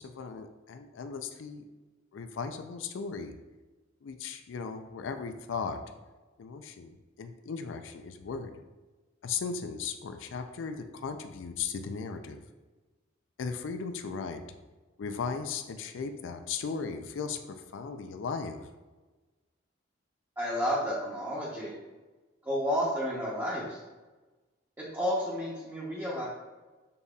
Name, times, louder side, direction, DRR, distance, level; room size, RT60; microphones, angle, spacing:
voice 1, 0.0-1.7 2.1-3.4 4.0-5.8 6.4-8.6 9.2-12.4 13.4-14.4 15.0-18.7, left 5 dB, 70° left, 7 dB, 0.4 m, -37 dB
voice 2, 20.4-21.7 22.4-23.8 24.8-26.3, equal, 15° right, -8 dB, 0.8 m, -31 dB
6.7 x 2.7 x 2.4 m, 1.2 s
head